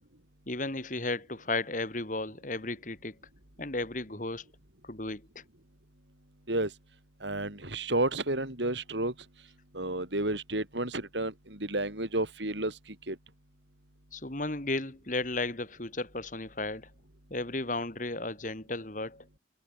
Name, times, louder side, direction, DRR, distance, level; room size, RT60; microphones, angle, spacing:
voice 1, 0.5-3.2 3.6-4.4 4.8-5.4 14.1-16.9 17.3-19.3, left 2 dB, 45° left, 2.4 m, -34 dB
voice 2, 7.2-9.1 9.7-12.7 13.1-13.2, right 2 dB, 70° right, 5.3 m, -31 dB
head